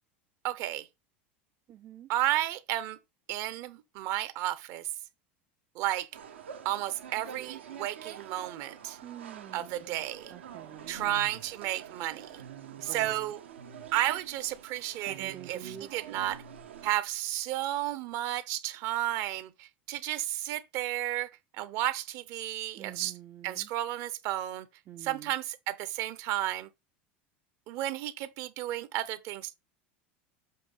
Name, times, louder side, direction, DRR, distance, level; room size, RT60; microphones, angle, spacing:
voice 1, 0.4-0.9 2.1-3.0 3.3-4.9 5.7-6.1 6.6-9.0 9.5-10.3 10.9-12.4 12.8-13.4 13.9-16.4 16.8-21.3 21.6-23.1 23.4-24.7 25.0-26.7 27.7-29.5, right 14 dB, 60° right, 0.9 m, -32 dB
voice 2, 1.7-2.1 9.0-11.1 12.7-13.3 15.1-15.9 22.8-23.7 24.9-25.3, right 11 dB, 40° right, 0.5 m, -47 dB
sound 1, 6.1-16.9, right 7 dB, 90° right, 1.2 m, -47 dB
7.6 x 2.8 x 5.5 m
hypercardioid pair, 95°, 6 cm